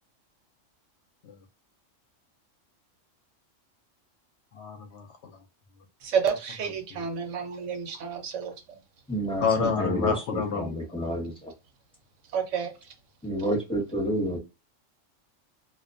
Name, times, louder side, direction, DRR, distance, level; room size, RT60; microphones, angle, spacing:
voice 1, 4.5-5.4 6.9-7.1 9.4-11.1, left 5 dB, 65° left, 0.8 m, -29 dB
voice 2, 6.0-8.5 12.3-12.7, right 6 dB, 75° right, 0.9 m, -29 dB
voice 3, 9.1-11.5 13.2-14.4, right 1 dB, 5° left, 0.7 m, -30 dB
2.3 x 2.2 x 2.5 m
omnidirectional pair, 1.3 m